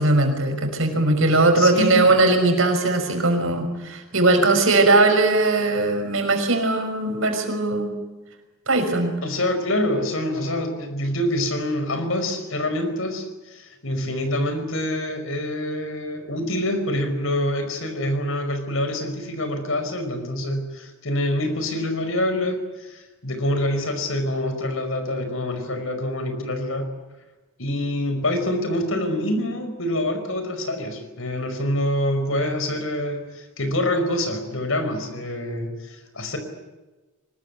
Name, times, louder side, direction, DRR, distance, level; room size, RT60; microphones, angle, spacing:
voice 1, 0.0-7.9 8.7-9.1, right 2 dB, 70° right, 5 dB, 5.6 m, -19 dB
voice 2, 1.3-2.1 9.2-26.9 27.6-36.4, left 1 dB, 70° left, 7 dB, 5.2 m, -26 dB
24.0 x 20.5 x 9.5 m, 1.2 s
head